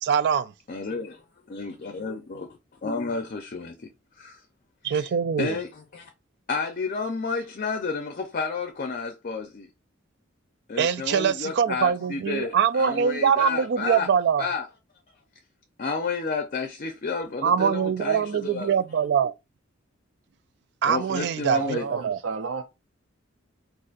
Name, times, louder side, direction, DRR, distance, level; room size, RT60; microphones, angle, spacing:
voice 1, 0.0-0.5 4.8-5.6 10.8-14.4 17.4-19.3 20.8-21.8 22.0-22.2, right 7 dB, 60° right, 0.3 m, -23 dB
voice 2, 0.7-2.5 2.8-3.9 4.2-4.4 4.8-5.1 5.4-6.1 6.5-9.7 10.7-14.1 14.4-14.7 15.8-18.8 20.8-21.9, left 4 dB, 45° left, 0.5 m, -31 dB
voice 3, 21.6-22.6, right 5 dB, 75° right, 0.7 m, -32 dB
3.9 x 2.5 x 2.4 m
head